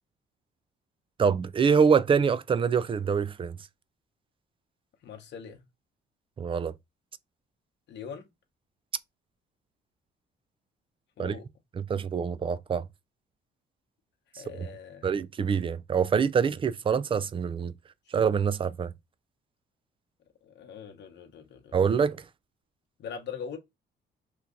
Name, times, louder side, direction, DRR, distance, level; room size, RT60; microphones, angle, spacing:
voice 1, 1.2-3.6 6.4-6.7 11.2-11.4 11.8-12.8 14.5-14.7 15.0-17.7 18.1-18.9 21.7-22.2, right 6 dB, 25° right, 0.3 m, -25 dB
voice 2, 5.0-5.6 7.9-8.3 11.2-11.4 14.4-15.1 20.4-21.8 23.0-23.6, left 7 dB, 60° left, 0.9 m, -41 dB
2.9 x 2.4 x 3.6 m
cardioid pair, 90°, 20 cm